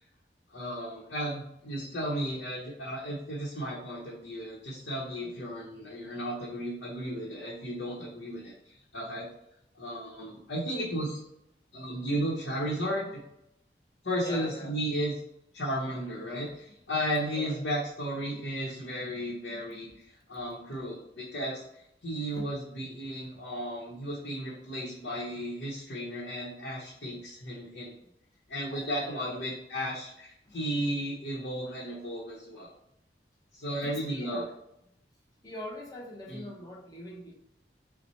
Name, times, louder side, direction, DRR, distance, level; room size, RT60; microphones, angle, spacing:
voice 1, 0.5-9.3 9.8-11.2 11.7-13.2 14.0-15.1 15.5-27.9 28.5-32.7 33.5-34.4 36.3-36.4, equal, 80° left, -6 dB, 0.9 m, -34 dB
voice 2, 14.2-14.8 17.3-17.6 22.3-22.5 27.0-27.2 28.7-29.4 30.4-30.6 31.7-31.8 32.5-32.6 33.7-34.5 35.4-37.3, left 1 dB, 20° left, -1 dB, 0.7 m, -43 dB
5.6 x 2.2 x 3.1 m, 0.79 s
head